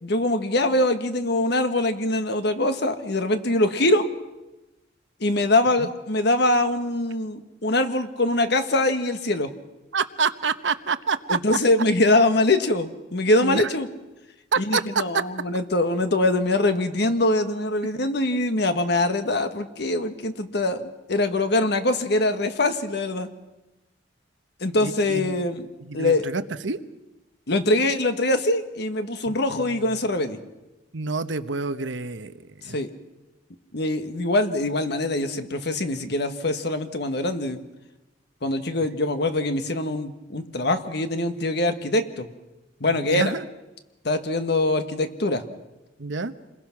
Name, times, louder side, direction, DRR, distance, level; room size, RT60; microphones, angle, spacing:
voice 1, 0.0-4.1 5.2-9.5 11.3-13.9 14.6-23.3 24.6-25.6 25.9-26.3 27.5-30.4 32.7-32.9 33.7-37.6 38.4-42.3 42.8-43.3 44.0-45.4, left 2 dB, 65° left, 9 dB, 1.5 m, -23 dB
voice 2, 9.9-11.4 13.4-13.6 14.5-15.2 24.8-25.4 25.8-26.8 29.3-29.9 30.9-32.3 32.6-32.8 42.8-43.4 46.0-46.3, right 4 dB, 85° right, 12 dB, 1.0 m, -27 dB
28.0 x 21.0 x 6.0 m, 1.0 s
head